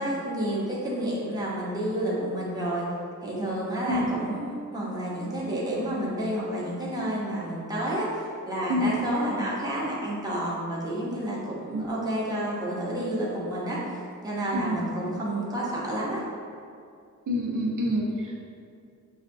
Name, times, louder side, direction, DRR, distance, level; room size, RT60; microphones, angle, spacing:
voice 1, 0.0-2.9 3.2-13.8 14.2-16.2, right 1 dB, 10° right, -6 dB, 0.7 m, -30 dB
voice 2, 17.3-18.0, equal, 85° right, -3 dB, 0.7 m, -26 dB
5.5 x 2.1 x 2.5 m, 2.4 s
wide cardioid pair, 145°, 31 cm